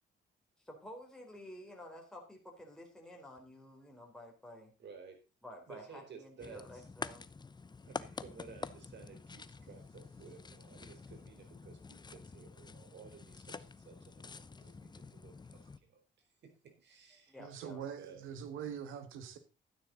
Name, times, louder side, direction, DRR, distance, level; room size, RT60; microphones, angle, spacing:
voice 1, 0.6-4.7 5.4-7.3 17.3-17.8, left 1 dB, 5° left, 4.1 m, -51 dB
voice 2, 4.8-5.2 5.7-6.9 7.8-17.4 18.0-18.2, right 6 dB, 60° right, 4.4 m, -55 dB
sound 1, 6.4-15.8, left 4 dB, 20° left, 0.7 m, -48 dB
voice 3, 17.4-19.4, right 8 dB, 85° right, 1.9 m, -43 dB
12.5 x 9.6 x 4.0 m
cardioid pair, 90°, 20 cm